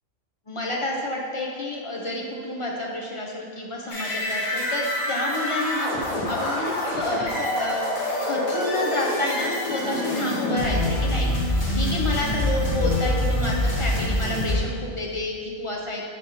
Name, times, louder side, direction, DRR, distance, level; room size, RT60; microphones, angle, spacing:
voice 1, 0.5-16.1, left 1 dB, 45° left, -2 dB, 0.4 m, -29 dB
sound 1, 3.9-14.5, left 1 dB, 85° left, 2.0 m, -26 dB
5.1 x 4.1 x 5.6 m, 2.1 s
omnidirectional pair, 1.4 m